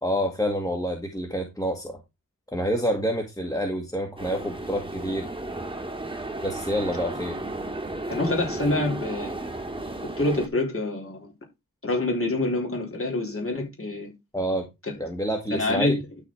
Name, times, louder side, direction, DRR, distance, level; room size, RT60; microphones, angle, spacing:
voice 1, 0.0-2.0 2.5-5.3 6.4-7.4 14.3-14.7 15.0-16.0, equal, 10° left, 2.0 m, -27 dB
sound 1, 4.2-10.5, right 2 dB, 15° right, 1.8 m, -34 dB
voice 2, 8.1-9.4 10.2-11.3 11.8-14.1 14.9-15.0 15.5-16.0, left 2 dB, 40° left, 3.6 m, -26 dB
12.0 x 4.2 x 4.6 m
wide cardioid pair, 60°, 32 cm